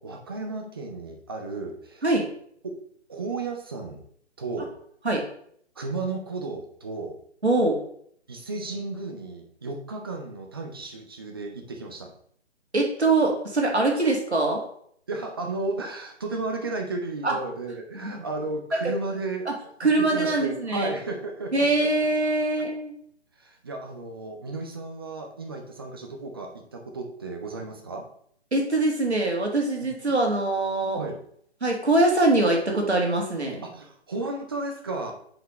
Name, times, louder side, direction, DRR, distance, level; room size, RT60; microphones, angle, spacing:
voice 1, 0.0-2.0 3.1-4.0 4.4-4.7 5.8-7.2 8.3-12.1 13.9-14.0 15.1-19.5 19.8-21.9 23.4-28.0 31.0-31.2 33.6-35.1, right 3 dB, 20° right, 3 dB, 0.5 m, -33 dB
voice 2, 7.4-7.8 12.7-14.6 17.2-17.3 17.9-18.2 19.5-19.6 19.8-20.9 21.5-23.0 28.5-31.0 31.6-33.6, right 2 dB, 75° right, 1 dB, 2.0 m, -23 dB
7.4 x 4.9 x 3.1 m, 0.64 s
figure-of-eight pair, 140°, 34 cm